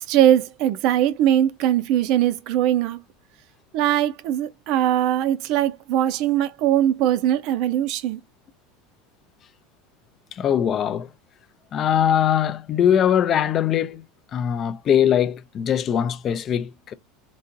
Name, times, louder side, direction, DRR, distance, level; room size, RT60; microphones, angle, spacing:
voice 1, 0.1-3.0 3.7-8.2, right 11 dB, 45° right, 0.5 m, -21 dB
voice 2, 10.3-11.1 11.7-14.0 14.3-16.9, left 9 dB, 25° left, 0.3 m, -21 dB
3.9 x 2.4 x 2.5 m
supercardioid pair, 170°, 0 cm